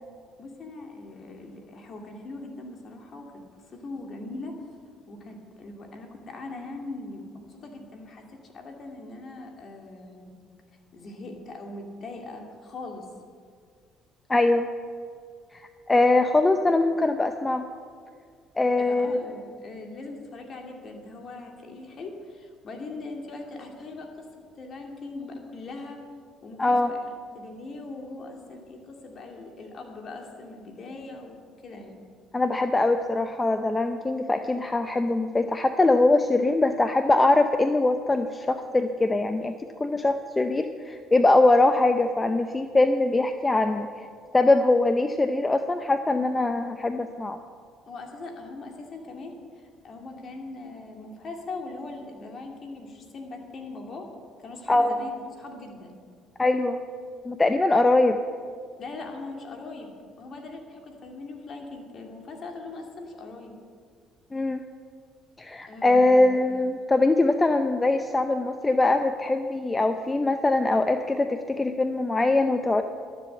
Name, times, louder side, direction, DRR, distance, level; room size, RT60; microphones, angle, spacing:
voice 1, 0.4-3.3 3.7-4.5 5.1-10.4 10.9-13.1 18.8-26.0 26.4-27.1 27.3-32.0 47.9-54.1 54.4-56.0 58.8-63.5 65.7-66.6, left 3 dB, 50° left, 2 dB, 2.4 m, -40 dB
voice 2, 14.3-14.7 15.5-17.7 18.6-19.2 26.6-26.9 32.3-39.5 39.8-43.9 44.3-47.4 54.7-54.9 56.4-56.8 57.2-58.2 64.3-64.6 65.4-72.8, left 2 dB, 20° left, 8 dB, 0.6 m, -22 dB
12.5 x 7.6 x 7.8 m, 2.1 s
supercardioid pair, 80°, 0 cm